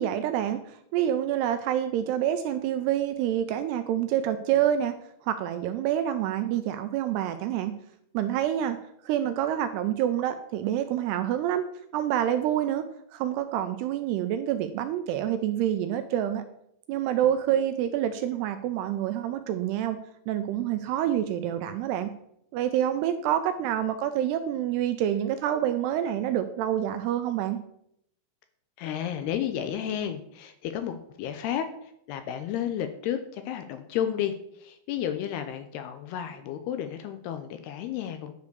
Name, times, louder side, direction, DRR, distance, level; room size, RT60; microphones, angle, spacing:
voice 1, 0.0-5.0 5.2-7.8 8.1-8.8 9.1-11.6 11.9-12.9 13.1-16.4 16.9-20.0 20.3-22.1 22.5-27.6, right 11 dB, 80° right, 9 dB, 2.4 m, -27 dB
voice 2, 28.8-38.3, left 9 dB, 80° left, 8 dB, 2.5 m, -32 dB
10.5 x 4.9 x 6.8 m, 0.74 s
omnidirectional pair, 5.1 m